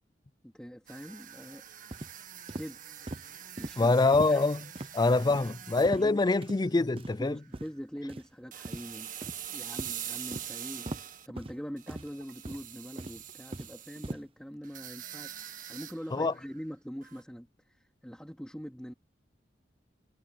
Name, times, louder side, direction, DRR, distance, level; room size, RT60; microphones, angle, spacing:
voice 1, 0.4-1.6 2.5-2.8 3.6-4.5 5.4-5.5 5.9-6.2 7.2-9.3 9.5-10.9 11.3-15.4 15.7-18.9, equal, 5° left, 2.7 m, -43 dB
sound 1, 0.9-7.0 7.3-7.6 8.5-11.3 11.8-14.1 14.6-16.6 17.0-17.2, right 10 dB, 50° right, 1.7 m, -44 dB
sound 2, 1.9-2.1 2.5-2.7 3.1-3.3 3.6-3.7 4.1-4.3 4.8-4.9 5.3-5.5 5.8-6.1 6.4-6.6 7.0-7.2 7.5-7.7 8.1-8.3 8.6-8.8 9.2-9.5 9.8-9.9 10.3-10.5 10.9-11.0 11.4-11.6 11.9-12.1 12.4-12.7 13.0-13.7 14.0-14.2, right 1 dB, 30° right, 0.8 m, -39 dB
voice 2, 3.8-4.7 4.9-7.4 16.1-16.3, left 3 dB, 25° left, 0.4 m, -25 dB
sound 3, 9.2-10.0 10.3-10.7 11.3-11.5 11.9-12.6 13.0-13.4 14.0-14.1 14.5-14.6, right 3 dB, 70° right, 7.3 m, -60 dB
head